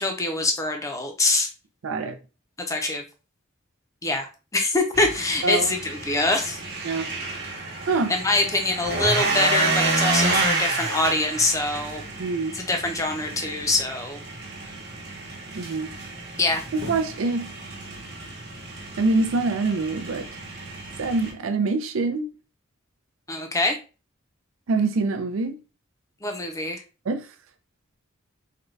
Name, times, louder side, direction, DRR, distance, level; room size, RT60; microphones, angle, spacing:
voice 1, 0.0-1.5 2.6-3.0 4.0-4.3 4.5-6.6 8.1-12.0 12.5-14.2 16.4-16.6 23.3-23.8 26.2-26.8, left 2 dB, 15° left, 0.5 m, -24 dB
voice 2, 1.8-2.2 5.4-5.7 6.8-7.1 7.9-8.1 12.2-12.6 15.5-15.9 16.7-17.5 19.0-20.3 21.0-22.3 24.7-25.5 27.1-27.3, right 3 dB, 90° right, 0.5 m, -25 dB
sound 1, 4.9-21.3, right 2 dB, 55° right, 0.9 m, -30 dB
3.7 x 2.2 x 3.2 m
head